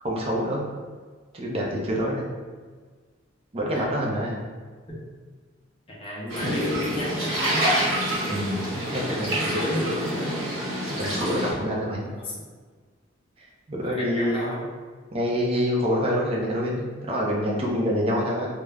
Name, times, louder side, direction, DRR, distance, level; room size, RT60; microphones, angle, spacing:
voice 1, 0.0-0.7 1.3-2.3 3.5-4.5 8.3-9.4 11.0-12.0 13.7-14.5 15.1-18.5, equal, 30° right, -3 dB, 0.5 m, -26 dB
voice 2, 5.9-8.1 8.9-10.6 12.0-12.5 13.8-14.7, left 1 dB, 30° left, -5 dB, 0.5 m, -32 dB
sound 1, 6.3-11.5, equal, 80° right, 1.2 m, -27 dB
2.3 x 2.0 x 3.2 m, 1.5 s
head